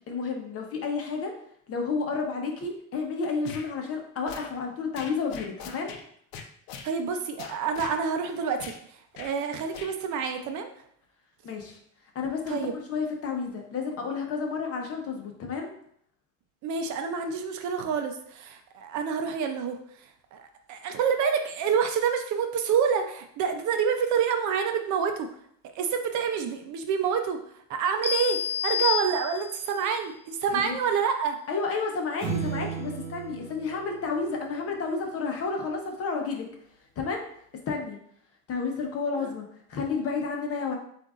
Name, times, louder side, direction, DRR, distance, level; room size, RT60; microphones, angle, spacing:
voice 1, 0.1-1.4 1.7-6.0 11.4-11.8 12.1-15.7 30.5-30.7 31.5-36.5 37.0-37.3 37.7-38.0 38.5-40.8, left 4 dB, 40° left, 2 dB, 0.9 m, -31 dB
sound 1, 3.4-3.7 4.3-4.5 5.0-6.0 6.3-6.9 7.4-8.0 8.6-8.8 9.1-9.3 9.7-9.9, left 6 dB, 70° left, 0.7 m, -41 dB
voice 2, 6.8-10.7 12.5-12.8 16.6-25.3 25.7-27.4 27.7-31.4 39.2-39.3, right 6 dB, 50° right, 6 dB, 0.6 m, -28 dB
sound 2, 28.0-29.7, left 8 dB, 5° left, 0.6 m, -29 dB
sound 3, 32.2-34.9, right 6 dB, 35° right, 1.5 m, -35 dB
7.6 x 2.6 x 2.4 m, 0.66 s
cardioid pair, 140°, 37 cm